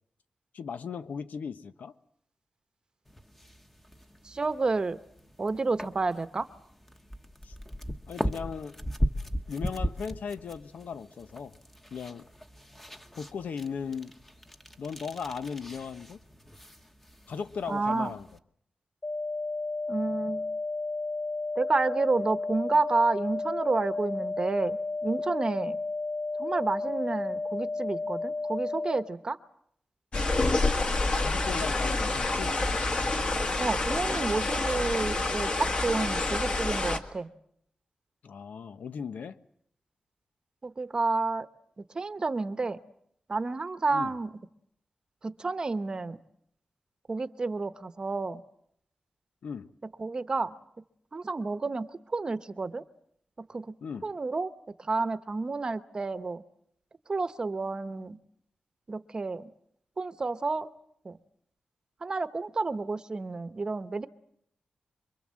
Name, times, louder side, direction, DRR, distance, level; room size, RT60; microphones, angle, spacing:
voice 1, 0.5-1.9 7.4-7.5 8.1-8.8 9.5-11.5 11.9-12.3 13.1-14.1 14.8-16.2 17.3-18.3 30.4-30.6 31.2-32.6 38.2-39.4 43.9-44.1 49.4-49.7 53.8-54.1, left 6 dB, 90° left, 1.1 m, -37 dB
sound 1, 3.1-18.4, equal, 10° left, 1.1 m, -38 dB
voice 2, 4.2-5.0 5.4-6.5 17.7-18.1 19.9-20.5 21.6-25.8 26.4-29.4 33.6-37.3 40.6-41.5 41.9-42.8 43.3-44.3 45.2-46.2 47.1-48.4 50.0-50.5 51.1-52.8 53.4-53.7 54.0-54.5 54.8-56.4 57.1-58.2 58.9-59.5 60.0-60.7 61.0-61.2 62.0-64.1, right 3 dB, 30° right, 1.0 m, -30 dB
sound 2, 19.0-29.0, left 3 dB, 30° left, 1.3 m, -32 dB
sound 3, 30.1-37.0, left 2 dB, 45° left, 2.0 m, -28 dB
27.0 x 23.0 x 7.6 m
wide cardioid pair, 170°, 3 cm